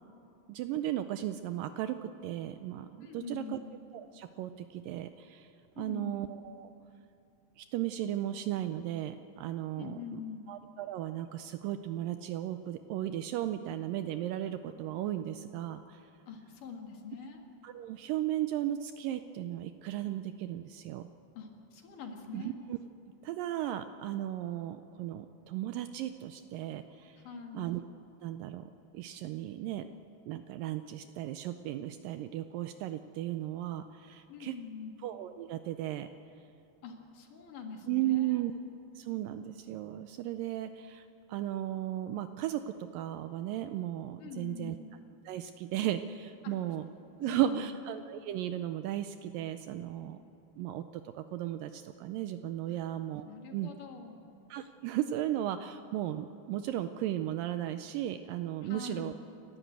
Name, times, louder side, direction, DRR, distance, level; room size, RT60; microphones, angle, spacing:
voice 1, 0.5-3.6 3.9-5.5 5.8-6.7 7.6-10.2 10.5-16.1 17.6-21.1 22.3-22.8 23.2-27.2 27.5-27.8 28.2-28.6 28.9-29.9 30.3-34.6 35.0-36.1 37.9-38.5 39.0-44.8 45.3-46.9 47.2-50.2 50.6-50.8 51.1-53.3 53.5-53.7 54.5-59.2, right 12 dB, 80° right, 10 dB, 2.1 m, -35 dB
voice 2, 3.0-3.7 5.7-6.1 9.8-10.5 16.3-17.4 21.4-22.5 27.2-27.7 34.3-34.9 36.8-38.4 44.2-44.8 46.4-46.5 47.2-47.7 53.3-54.2 58.6-59.2, left 5 dB, 60° left, 2 dB, 3.3 m, -44 dB
29.0 x 12.5 x 8.1 m, 2.7 s
omnidirectional pair, 4.3 m